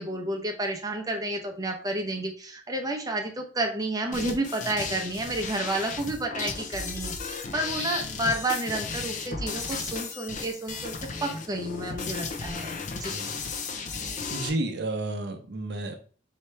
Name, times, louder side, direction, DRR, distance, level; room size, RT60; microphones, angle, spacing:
voice 1, 0.0-13.1, right 1 dB, 20° right, 3 dB, 0.7 m, -31 dB
sound 1, 4.1-14.5, left 4 dB, 45° left, 0.5 m, -34 dB
voice 2, 14.3-16.0, right 2 dB, 65° right, 5 dB, 0.6 m, -32 dB
4.5 x 2.8 x 3.2 m, 0.40 s
head